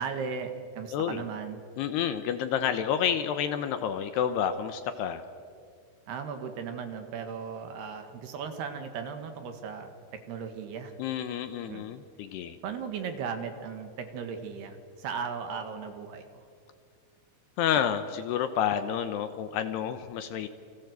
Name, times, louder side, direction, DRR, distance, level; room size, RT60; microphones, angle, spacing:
voice 1, 0.0-1.6 6.1-10.9 11.7-11.9 12.6-16.4, right 6 dB, 65° right, 7 dB, 3.5 m, -37 dB
voice 2, 0.9-1.3 1.8-5.2 11.0-12.6 17.6-20.5, left 9 dB, 75° left, 10 dB, 2.7 m, -29 dB
29.5 x 24.0 x 8.2 m, 2.2 s
omnidirectional pair, 5.5 m